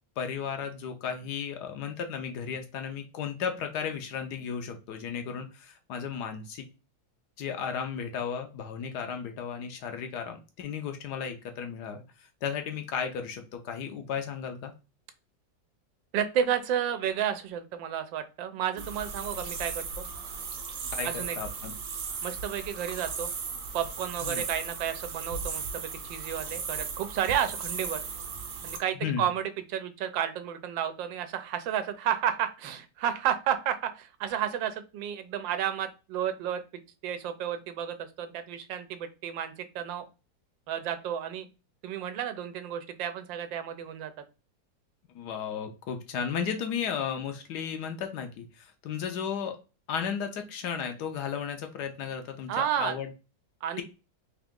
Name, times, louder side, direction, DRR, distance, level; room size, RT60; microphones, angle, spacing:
voice 1, 0.2-6.6 7.4-14.7 20.9-21.1 21.4-21.7 24.2-24.4 29.0-29.2 45.1-49.6 49.9-53.1, left 7 dB, 70° left, 6 dB, 1.1 m, -34 dB
voice 2, 16.1-20.0 21.0-21.4 22.2-23.3 23.7-28.0 28.6-36.6 37.0-40.1 40.7-41.5 41.8-44.1 52.5-52.9 53.6-53.8, right 9 dB, 90° right, 10 dB, 1.3 m, -31 dB
sound 1, 18.8-28.8, right 5 dB, 65° right, 1.2 m, -36 dB
3.7 x 2.9 x 3.5 m, 0.30 s
omnidirectional pair, 2.0 m